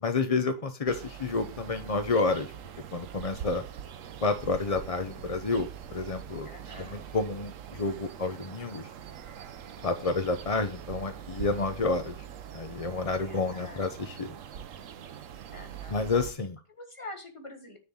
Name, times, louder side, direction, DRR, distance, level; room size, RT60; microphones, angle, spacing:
voice 1, 0.0-2.5 2.9-3.6 4.2-6.5 6.8-8.9 9.8-12.2 12.5-14.3 15.9-16.6, left 3 dB, 50° left, 7 dB, 0.4 m, -29 dB
sound 1, 0.9-16.3, right 9 dB, 60° right, 1.0 m, -43 dB
voice 2, 6.4-7.0 13.2-13.9 15.5-16.0 16.7-17.8, left 1 dB, 20° left, 5 dB, 1.6 m, -45 dB
10.0 x 3.9 x 7.0 m, 0.34 s
omnidirectional pair, 1.8 m